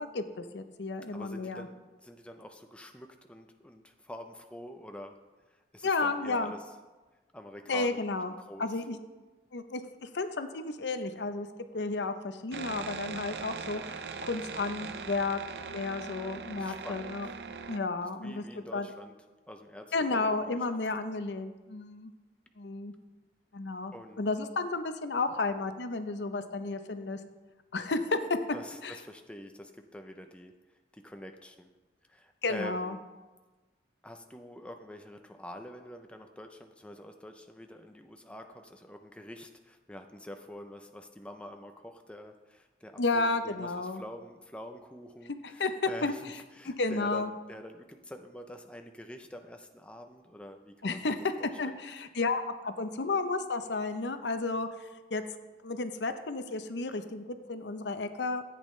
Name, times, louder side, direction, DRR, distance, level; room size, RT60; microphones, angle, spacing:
voice 1, 0.0-1.7 5.8-6.5 7.7-8.3 8.6-9.0 9.5-11.5 11.7-17.3 17.7-18.4 18.7-18.9 19.9-22.1 22.6-22.9 23.5-27.2 27.7-28.2 28.8-29.0 32.4-33.0 43.0-44.0 45.4-46.1 46.6-47.3 50.8-51.2 51.6-55.2 55.6-58.4, left 3 dB, 75° left, 9 dB, 0.7 m, -32 dB
voice 2, 1.1-5.2 5.5-6.6 7.3-8.0 8.2-8.7 16.5-17.3 18.0-19.1 19.5-20.4 23.9-24.2 28.5-31.7 32.1-33.0 34.0-51.0 51.4-51.7, left 1 dB, 5° left, 5 dB, 0.5 m, -46 dB
sound 1, 12.5-17.8, right 5 dB, 65° right, 0.5 m, -40 dB
13.5 x 8.5 x 3.2 m, 1.2 s
head